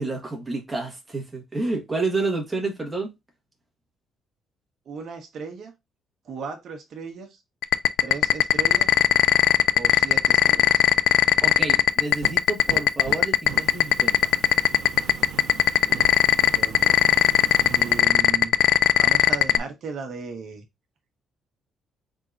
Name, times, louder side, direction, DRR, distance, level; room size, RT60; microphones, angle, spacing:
voice 1, 0.0-3.1 11.4-14.5, right 3 dB, 15° right, 1.5 m, -29 dB
voice 2, 4.8-5.7 6.2-7.4 8.0-9.0 9.7-10.8 16.4-17.0 17.6-18.5 19.0-20.6, right 5 dB, 55° right, 1.2 m, -36 dB
sound 1, 7.6-19.6, left 12 dB, 75° left, 0.3 m, -16 dB
Fire, 11.9-18.0, right 7 dB, 75° right, 0.6 m, -39 dB
4.2 x 3.7 x 2.5 m
cardioid pair, 150°, 0 cm